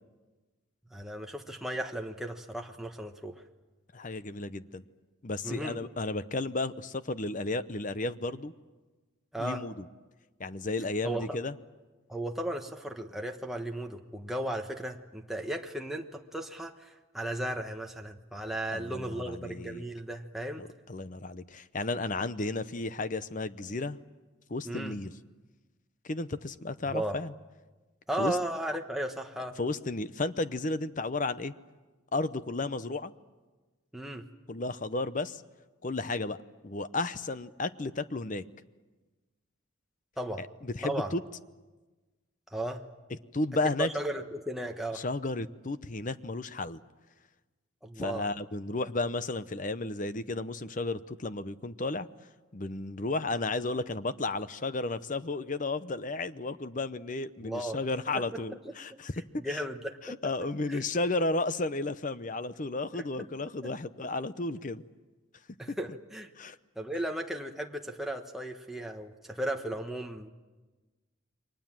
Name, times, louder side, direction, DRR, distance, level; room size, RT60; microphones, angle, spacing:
voice 1, 0.9-3.4 5.4-5.8 9.3-9.6 11.0-11.4 12.1-20.6 24.6-25.0 26.9-27.2 28.1-29.6 33.9-34.3 40.2-40.4 40.8-41.1 42.5-42.8 43.8-45.0 47.8-48.2 57.4-57.8 59.3-60.0 60.7-60.8 62.9-63.0 65.6-66.3 66.7-70.3, right 1 dB, ahead, 2 dB, 1.2 m, -35 dB
voice 2, 3.9-4.8 5.2-8.5 9.4-9.8 10.4-11.5 18.7-19.8 20.6-24.0 24.5-25.1 26.0-27.3 28.2-28.4 29.6-31.5 32.1-33.1 34.5-35.4 35.8-36.4 36.6-38.4 40.4-41.2 43.3-43.9 44.9-46.8 48.0-52.1 52.5-59.1 59.4-59.6 60.0-64.8 66.4-66.6, left 2 dB, 40° left, 13 dB, 0.7 m, -33 dB
29.0 x 23.5 x 7.5 m, 1.3 s
head